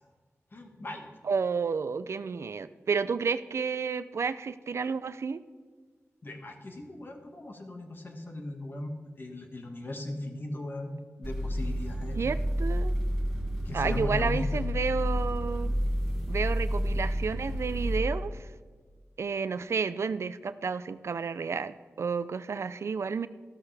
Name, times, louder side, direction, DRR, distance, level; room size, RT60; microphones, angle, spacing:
voice 1, 0.5-1.1 6.2-12.2 13.7-14.7, left 1 dB, 45° left, 3 dB, 1.7 m, -38 dB
voice 2, 1.2-5.4 12.2-12.9 13.7-15.8 16.3-18.4 19.2-23.3, right 5 dB, 65° right, 14 dB, 0.4 m, -31 dB
sound 1, 11.2-18.0, equal, 5° left, 4.2 m, -30 dB
13.0 x 13.0 x 3.4 m, 1.5 s
wide cardioid pair, 90°, 5 cm